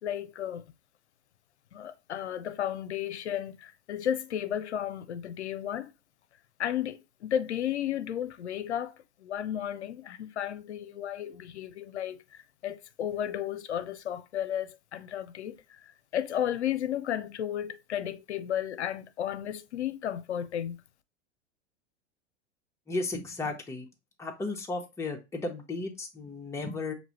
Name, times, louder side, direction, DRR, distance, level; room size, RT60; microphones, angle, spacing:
voice 1, 0.0-0.6 1.7-5.9 6.6-8.9 9.2-20.8, left 10 dB, 80° left, 0.6 m, -33 dB
voice 2, 22.9-23.9 24.2-26.9, left 3 dB, 10° left, 0.9 m, -34 dB
5.8 x 2.7 x 2.9 m
figure-of-eight pair, 95°, 34 cm